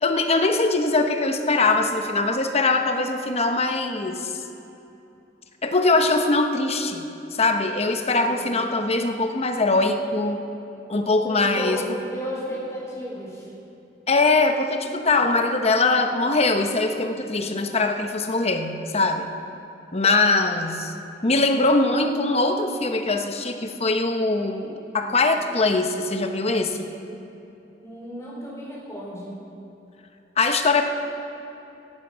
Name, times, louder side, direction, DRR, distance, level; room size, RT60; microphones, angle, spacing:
voice 1, 0.0-4.4 5.6-10.4 10.9-11.8 14.1-19.3 19.9-20.9 21.2-26.9 30.4-30.8, left 3 dB, 35° left, 6 dB, 1.0 m, -22 dB
voice 2, 8.1-8.4 11.3-13.5 27.8-29.4, equal, 15° left, -5 dB, 4.3 m, -34 dB
16.5 x 11.0 x 6.2 m, 2.8 s
head